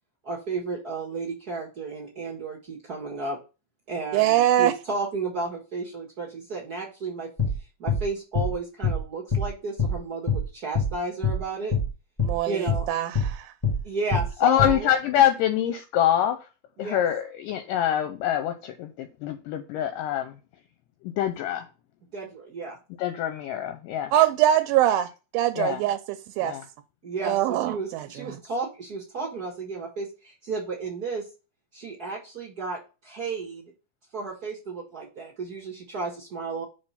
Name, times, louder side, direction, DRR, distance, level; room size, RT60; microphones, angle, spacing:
voice 1, 0.2-3.4 3.9-7.3 7.8-11.7 12.5-12.9 13.8-14.9 16.8-17.0 22.1-22.7 27.0-31.3 31.7-33.6 34.1-36.6, right 3 dB, 60° right, 0.9 m, -33 dB
voice 2, 4.1-4.7 12.2-13.5 24.1-26.6 27.2-28.4, right 12 dB, 85° right, 2.3 m, -23 dB
sound 1, 7.4-7.5 7.9-8.0 8.3-8.5 8.8-9.0 9.3-9.5 9.8-9.9 10.3-10.4 10.7-10.9 11.2-11.4 11.7-11.9 12.2-12.3 12.7-12.8 13.1-13.3 13.6-13.8 14.1-14.3 14.6-14.7, left 4 dB, 15° left, 1.0 m, -24 dB
voice 3, 14.4-16.4 16.8-20.3 21.2-21.7 23.0-24.1 25.6-25.8 26.4-26.6, left 11 dB, 80° left, 2.1 m, -25 dB
5.4 x 4.4 x 5.6 m
omnidirectional pair, 4.2 m